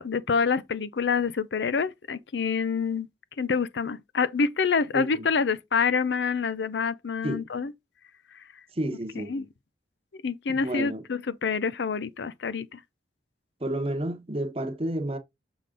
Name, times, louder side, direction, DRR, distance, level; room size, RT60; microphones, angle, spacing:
voice 1, 0.0-3.1 3.4-7.7 8.3-8.4 9.2-9.5 10.1-12.8, left 5 dB, 70° left, 0.5 m, -27 dB
voice 2, 4.9-5.3 7.2-7.4 8.8-9.3 10.5-11.0 13.6-15.2, right 1 dB, 30° right, 1.0 m, -31 dB
6.8 x 5.0 x 3.8 m
head